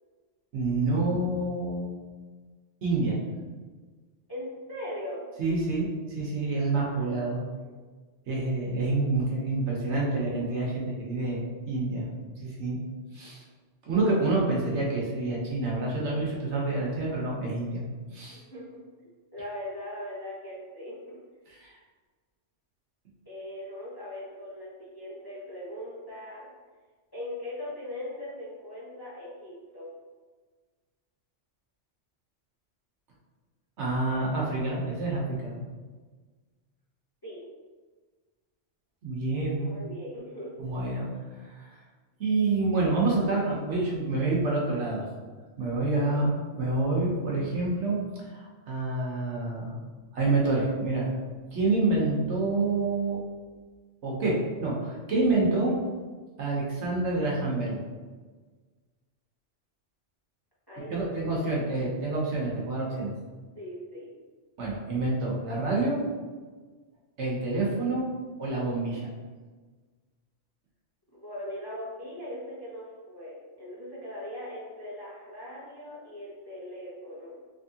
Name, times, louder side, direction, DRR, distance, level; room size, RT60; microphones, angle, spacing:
voice 1, 0.5-1.9 2.8-3.1 5.4-7.4 8.3-12.1 12.4-12.8 13.1-13.4 13.8-17.8 18.1-18.4 21.5-21.7 33.8-35.6 39.0-39.8 40.6-41.1 41.4-41.7 42.2-45.1 45.6-48.0 48.2-49.8 50.1-51.1 51.5-53.2 54.0-55.7 56.4-57.8 60.9-63.1 64.6-66.0 67.2-68.0 68.4-69.0, right 2 dB, 70° right, -3 dB, 1.1 m, -27 dB
voice 2, 4.3-5.2 6.9-7.7 18.3-18.8 19.3-21.2 23.3-26.5 27.1-29.9 37.2-37.4 39.6-40.5 45.9-46.3 60.7-61.7 63.5-64.1 71.1-77.3, left 1 dB, 25° left, -9 dB, 0.7 m, -40 dB
3.5 x 3.0 x 2.7 m, 1.4 s
omnidirectional pair, 1.2 m